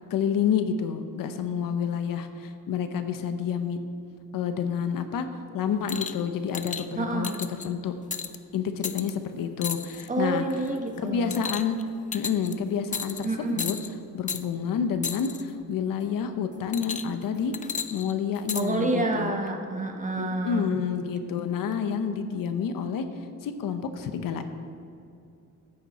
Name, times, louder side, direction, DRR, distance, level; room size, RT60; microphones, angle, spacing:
voice 1, 0.1-3.8 4.3-5.3 5.5-7.3 7.6-8.0 8.5-10.4 11.0-11.8 12.1-13.8 14.1-17.5 17.9-19.3 20.2-23.0 23.4-24.5, left 7 dB, 75° left, 9 dB, 0.9 m, -29 dB
sound 1, 5.9-6.2 6.5-6.8 7.2-7.7 8.1-8.4 8.8-9.1 9.6-10.1 10.5-10.8 11.3-11.8 12.1-12.5 12.9-13.3 13.6-13.9 14.3-14.4 15.0-15.4 16.7-17.2 17.5-18.6 19.5-19.6, left 6 dB, 25° left, 0.4 m, -33 dB
voice 2, 7.0-7.4 10.1-11.4 13.2-13.7 18.5-20.8, right 2 dB, 20° right, 3 dB, 1.2 m, -29 dB
14.0 x 8.9 x 4.3 m, 2.6 s
cardioid pair, 145°, 34 cm